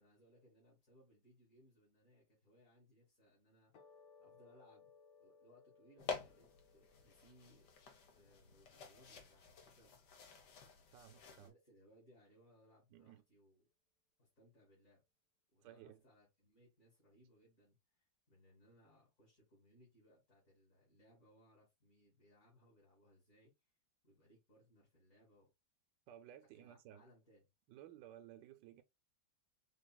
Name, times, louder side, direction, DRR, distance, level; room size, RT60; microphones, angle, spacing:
voice 1, 0.0-4.9 5.2-7.7 8.0-10.3 11.4-13.7 14.2-15.0 15.5-23.5 24.0-25.5 26.5-27.4, equal, 45° left, 2.6 m, -68 dB
sound 1, 3.7-10.3, left 6 dB, 90° left, 1.9 m, -67 dB
sound 2, 6.0-11.5, left 6 dB, 65° left, 1.5 m, -50 dB
voice 2, 10.9-11.5 12.9-13.2 15.6-16.0 26.1-27.0 27.7-28.8, right 11 dB, 75° right, 1.2 m, -57 dB
5.2 x 2.8 x 2.2 m
omnidirectional pair, 2.0 m